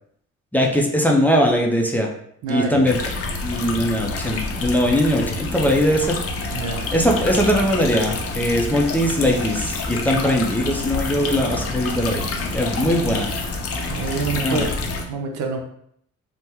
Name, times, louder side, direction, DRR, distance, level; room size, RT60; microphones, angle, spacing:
voice 1, 0.5-2.1 2.5-3.0 3.4-6.2 6.9-12.2 12.5-13.3 14.3-14.7, equal, 5° left, 0 dB, 0.5 m, -20 dB
voice 2, 2.4-2.8 6.5-6.8 10.1-10.2 13.9-14.7 15.1-15.6, right 5 dB, 75° right, 4 dB, 0.6 m, -26 dB
sound 1, 2.8-15.0, left 3 dB, 50° left, 0.6 m, -27 dB
3.4 x 2.1 x 2.9 m, 0.68 s
cardioid pair, 90°, 30 cm